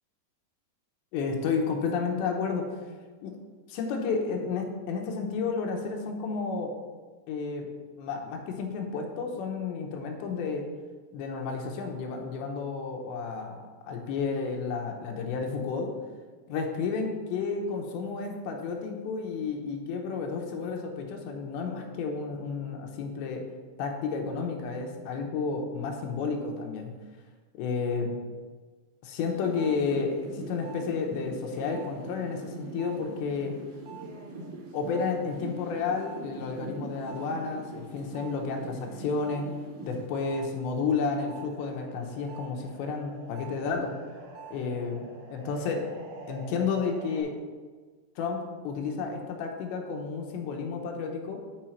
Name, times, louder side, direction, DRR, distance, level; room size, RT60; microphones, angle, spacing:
voice 1, 1.1-2.7 3.2-3.4 3.7-6.7 7.3-7.7 8.0-10.7 11.1-13.6 13.8-15.9 16.5-23.5 23.8-26.9 27.6-28.2 29.0-33.6 34.7-44.0 44.5-45.9 46.3-47.4 48.2-51.4, left 5 dB, 90° left, 2 dB, 3.2 m, -31 dB
sound 1, 29.2-40.5 40.9-47.2, right 3 dB, 75° right, 1.9 m, -43 dB
10.0 x 4.9 x 4.5 m, 1.4 s
omnidirectional pair, 5.0 m